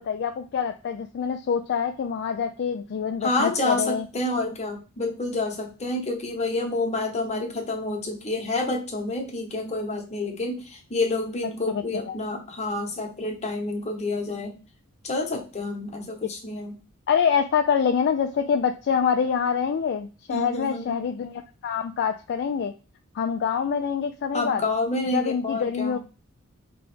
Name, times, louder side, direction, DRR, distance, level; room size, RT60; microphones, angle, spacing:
voice 1, 0.0-4.0 11.7-12.2 17.1-22.7 23.1-24.6 25.1-26.0, left 7 dB, 50° left, 6 dB, 0.3 m, -25 dB
voice 2, 3.2-14.6 15.0-16.8 20.3-20.9 24.3-26.0, left 2 dB, 30° left, 2 dB, 1.0 m, -28 dB
4.7 x 3.0 x 3.2 m, 0.34 s
head